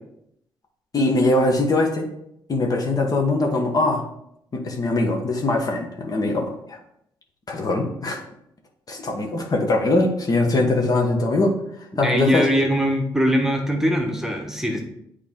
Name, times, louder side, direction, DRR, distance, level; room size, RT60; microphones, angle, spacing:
voice 1, 0.9-2.1 2.5-4.0 4.5-6.8 7.5-8.2 8.9-11.5 12.0-12.5, left 2 dB, 45° left, 2 dB, 1.3 m, -21 dB
voice 2, 12.0-14.8, equal, 5° right, 2 dB, 1.2 m, -22 dB
8.2 x 3.3 x 3.7 m, 0.75 s
supercardioid pair, 65°, 9 cm